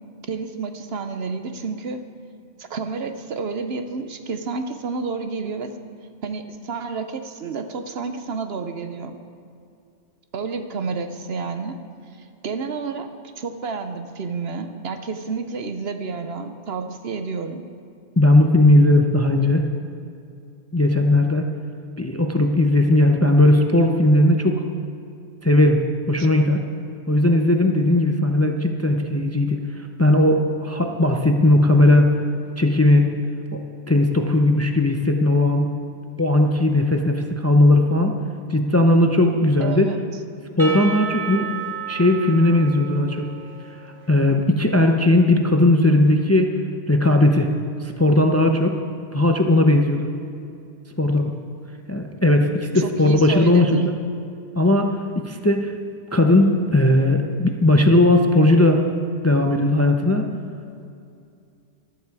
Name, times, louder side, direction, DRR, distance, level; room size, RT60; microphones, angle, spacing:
voice 1, 0.3-2.0 2.6-5.8 6.2-9.2 10.3-11.8 12.2-17.7 26.2-26.3 39.6-40.0 52.8-54.0, right 4 dB, 65° right, 8 dB, 1.0 m, -30 dB
voice 2, 18.2-19.6 20.7-21.5 22.0-24.6 25.4-25.8 26.1-26.6 27.1-32.1 32.6-33.1 33.5-33.6 33.9-35.7 36.2-38.2 38.5-39.9 40.6-41.6 41.9-43.3 44.1-46.5 46.9-47.5 47.8-48.8 49.1-50.1 51.0-51.3 51.9-53.8 54.5-55.8 56.1-58.8 59.2-60.3, left 1 dB, 15° left, 4 dB, 0.6 m, -17 dB
Percussion / Church bell, 40.6-44.6, right 6 dB, 30° right, 1.2 m, -33 dB
14.0 x 12.5 x 4.8 m, 2.5 s
omnidirectional pair, 1.2 m